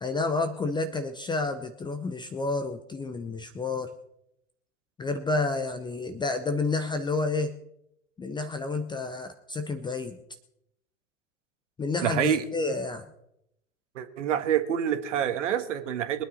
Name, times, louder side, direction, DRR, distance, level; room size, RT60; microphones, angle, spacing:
voice 1, 0.0-3.9 5.0-7.5 8.2-10.2 11.8-13.1, left 3 dB, 10° left, 9 dB, 0.7 m, -30 dB
voice 2, 12.0-12.4 13.9-16.2, right 9 dB, 60° right, 9 dB, 1.7 m, -27 dB
23.0 x 9.5 x 4.1 m, 0.79 s
figure-of-eight pair, 90°, 41 cm